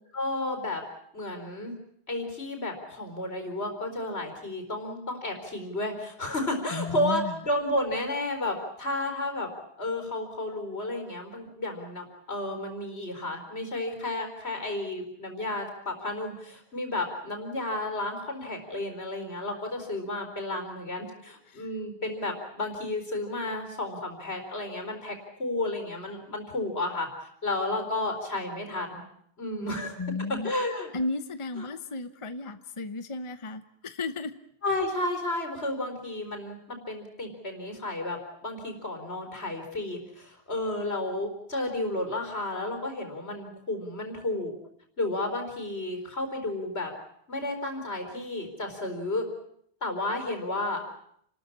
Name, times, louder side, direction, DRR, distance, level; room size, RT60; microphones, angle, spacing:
voice 1, 0.1-0.8 1.1-1.7 2.1-9.5 9.8-27.1 27.4-29.0 29.4-29.9 30.3-30.9 31.6-31.7 32.4-32.5 34.6-38.2 38.4-44.5 45.0-46.9 47.3-49.2 49.8-50.8, left 2 dB, 80° left, 5 dB, 4.7 m, -32 dB
voice 2, 6.7-7.3 21.5-21.6 30.0-30.5 30.9-34.3, left 3 dB, 30° left, 11 dB, 1.0 m, -34 dB
29.5 x 13.5 x 9.8 m, 0.70 s
omnidirectional pair, 1.1 m